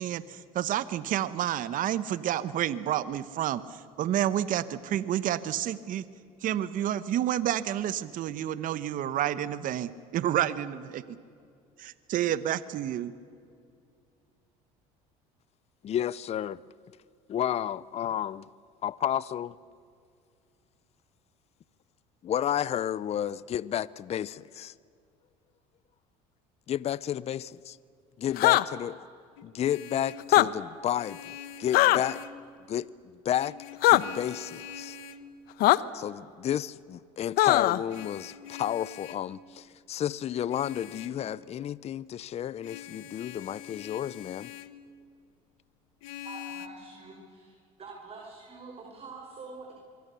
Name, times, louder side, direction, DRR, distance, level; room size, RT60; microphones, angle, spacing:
voice 1, 0.0-6.0 6.4-11.2 11.8-13.1, right 11 dB, 55° right, 1.0 m, -30 dB
voice 2, 15.8-16.6 17.3-18.4 18.8-19.5 22.2-24.7 26.7-27.8 28.2-29.1 29.4-32.2 32.7-32.9 33.2-33.6 33.8-35.0 35.9-44.5, left 10 dB, 40° left, 0.6 m, -31 dB
sound 1, 28.4-28.6 30.2-30.5 31.7-32.0 33.8-34.0 35.6-35.8 37.4-37.8, left 17 dB, 65° left, 0.9 m, -19 dB
Vehicle horn car horn honking, 29.4-30.3 31.0-32.4 33.3-35.3 37.9-39.3 40.5-41.2 42.6-44.8 46.0-46.7, left 10 dB, 90° left, 1.2 m, -44 dB
voice 3, 46.2-47.5 47.8-49.7, right 3 dB, 35° right, 5.1 m, -45 dB
25.5 x 23.5 x 7.0 m
supercardioid pair, 90°, 17 cm